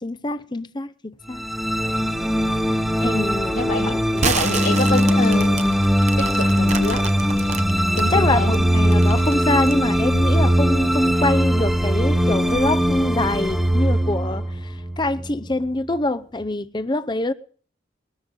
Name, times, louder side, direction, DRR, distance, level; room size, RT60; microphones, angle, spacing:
voice 1, 0.0-1.4 2.9-4.3 8.1-17.3, left 2 dB, 25° left, 0.7 m, -25 dB
sound 1, 1.3-15.7, equal, ahead, 1.1 m, -20 dB
voice 2, 3.5-3.9 4.2-5.8 6.2-7.1 8.0-8.7, left 2 dB, 50° left, 2.3 m, -26 dB
sound 2, 4.1-8.1 8.5-9.8, right 5 dB, 35° right, 0.9 m, -28 dB
21.0 x 13.5 x 3.9 m
head